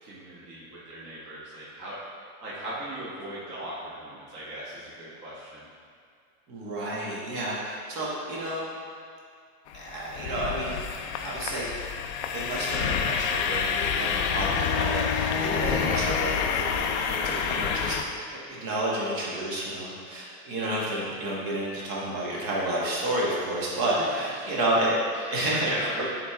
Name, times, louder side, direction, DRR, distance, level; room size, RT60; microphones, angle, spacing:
voice 1, 0.0-2.0 2.4-5.6 15.5-16.1 24.3-24.9 25.1-26.0, right 1 dB, 25° right, -9 dB, 1.3 m, -39 dB
voice 2, 6.5-8.6 9.7-10.7 11.2-11.7 12.3-18.0 18.3-25.0 25.3-26.0, right 1 dB, 40° right, -5 dB, 1.5 m, -30 dB
sound 1, 9.7-18.0, left 7 dB, 50° left, 0.5 m, -28 dB
8.8 x 3.5 x 3.6 m, 2.2 s
supercardioid pair, 140°, 45 cm